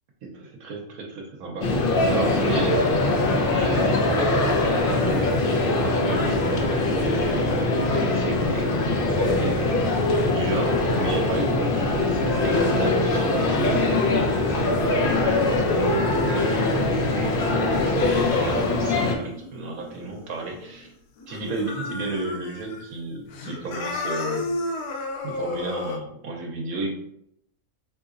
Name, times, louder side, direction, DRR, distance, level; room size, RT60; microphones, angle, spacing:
voice 1, 0.2-1.7 2.1-3.0 3.3-6.9 7.8-8.8 9.1-13.8 14.9-20.9 21.3-24.6 25.2-26.9, right 3 dB, 75° right, 1 dB, 1.1 m, -32 dB
sound 1, 1.6-19.1, left 2 dB, 70° left, 0.5 m, -22 dB
sound 2, 11.3-20.9 21.2-22.8 23.2-26.0, left 2 dB, 85° left, 1.1 m, -35 dB
3.8 x 2.9 x 2.4 m, 0.74 s
omnidirectional pair, 1.6 m